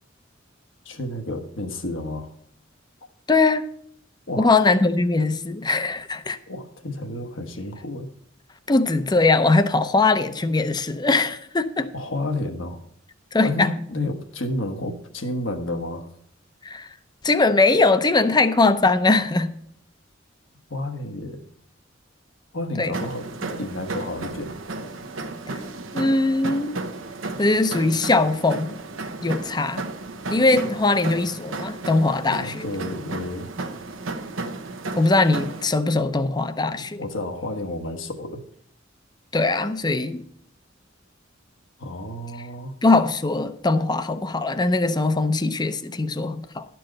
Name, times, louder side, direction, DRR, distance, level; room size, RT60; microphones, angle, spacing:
voice 1, 0.8-2.3 4.3-4.5 6.5-8.1 11.9-12.8 13.4-16.1 20.7-21.4 22.5-24.5 30.5-30.7 32.4-33.5 37.0-38.4 41.8-42.7, left 1 dB, 75° left, 1.3 m, -31 dB
voice 2, 3.3-3.6 4.4-6.4 8.7-11.9 13.3-13.7 16.6-16.9 17.2-19.5 22.8-22.9 25.9-26.8 27.4-28.8 29.2-29.8 30.3-32.7 35.0-37.0 39.3-40.2 42.8-46.7, left 3 dB, 20° left, 0.6 m, -21 dB
sound 1, 22.9-35.6, right 2 dB, 90° right, 1.0 m, -33 dB
11.5 x 4.6 x 7.6 m
head